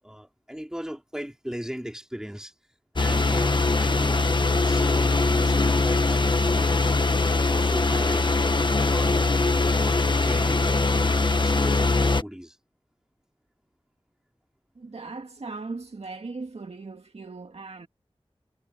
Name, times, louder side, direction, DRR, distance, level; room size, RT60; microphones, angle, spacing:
voice 1, 0.0-2.5 2.9-7.0 7.5-8.3 8.7-9.3 9.6-12.6, equal, 5° right, 4.3 m, -38 dB
sound 1, 3.0-12.2, left 3 dB, 50° left, 1.2 m, -22 dB
voice 2, 14.8-17.9, right 3 dB, 85° right, 2.1 m, -38 dB
wide cardioid pair, 65°, 10 cm